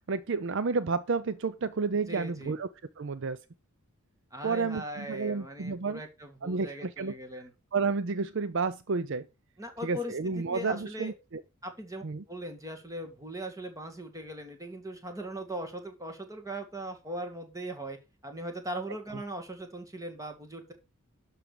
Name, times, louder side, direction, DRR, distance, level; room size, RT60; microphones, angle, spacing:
voice 1, 0.1-2.7 3.0-3.4 4.4-6.0 6.4-7.1 7.7-9.3 9.8-11.4 12.0-12.2, right 4 dB, 55° right, 0.5 m, -31 dB
voice 2, 2.1-2.5 4.3-7.5 9.6-11.1 11.6-18.0 18.2-20.7, right 1 dB, 15° right, 2.3 m, -39 dB
12.0 x 4.9 x 6.8 m
head